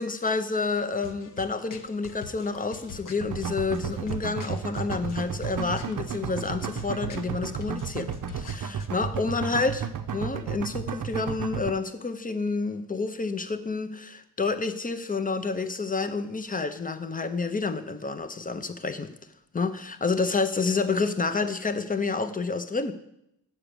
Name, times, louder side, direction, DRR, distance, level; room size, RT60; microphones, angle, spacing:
voice 1, 0.0-19.1 19.5-22.9, left 4 dB, 20° left, 9 dB, 0.6 m, -29 dB
sound 1, 0.9-8.9, left 5 dB, 50° left, 0.9 m, -45 dB
sound 2, 3.2-11.7, right 7 dB, 50° right, 0.6 m, -33 dB
7.5 x 6.0 x 6.8 m, 0.78 s
wide cardioid pair, 140°, 42 cm